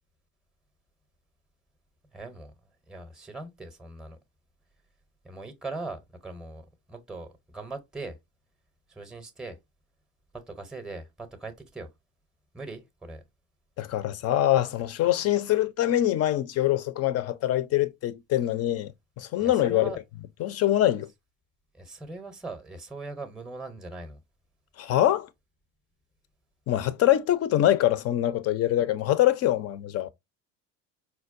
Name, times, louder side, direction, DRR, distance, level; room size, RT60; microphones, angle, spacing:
voice 1, 2.1-2.5 2.9-4.2 5.2-8.2 8.9-9.6 10.3-11.9 12.5-13.2 19.4-20.0 21.7-24.2, right 3 dB, ahead, 0.6 m, -40 dB
voice 2, 13.8-18.9 19.2-19.9 20.4-21.1 24.8-25.3 26.7-30.1, left 13 dB, 40° left, 0.4 m, -24 dB
4.4 x 2.1 x 2.5 m
hypercardioid pair, 80°, 39 cm